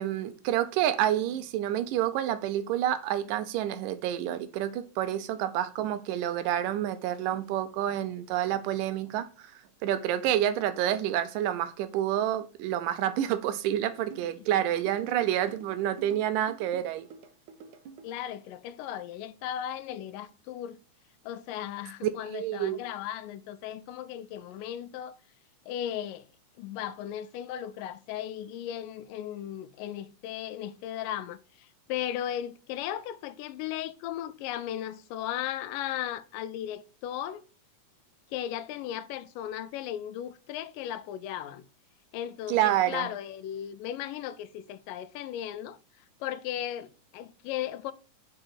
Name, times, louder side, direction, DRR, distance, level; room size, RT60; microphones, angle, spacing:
voice 1, 0.0-9.5 9.8-17.1 22.0-22.8 42.5-43.1, right 11 dB, 90° right, 2.3 m, -28 dB
sound 1, 14.1-18.1, right 5 dB, 70° right, 2.2 m, -48 dB
voice 2, 18.0-20.8 21.3-25.2 25.7-26.3 26.6-37.4 38.3-41.7 42.1-45.8 46.2-47.9, left 11 dB, 90° left, 2.3 m, -36 dB
6.3 x 4.9 x 4.5 m
omnidirectional pair, 3.8 m